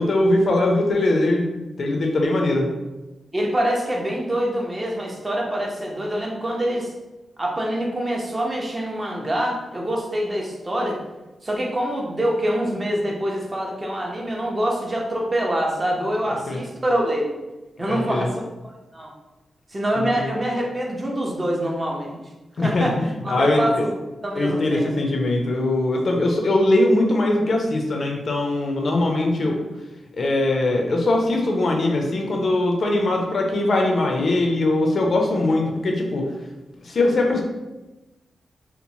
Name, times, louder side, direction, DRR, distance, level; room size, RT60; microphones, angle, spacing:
voice 1, 0.0-1.5 1.8-2.7 16.5-16.6 17.9-18.3 19.9-20.3 22.6-22.9 23.3-23.8 24.4-29.6 30.2-36.2 36.8-37.4, left 2 dB, 50° left, 1 dB, 0.4 m, -21 dB
voice 2, 3.3-6.9 7.4-11.0 11.4-17.3 17.8-18.3 18.9-19.1 19.7-22.2 22.6-22.9 23.2-23.9 24.2-24.9 29.4-29.5, right 1 dB, 25° right, -1 dB, 0.5 m, -25 dB
2.9 x 2.0 x 2.6 m, 1.1 s
wide cardioid pair, 110°, 0 cm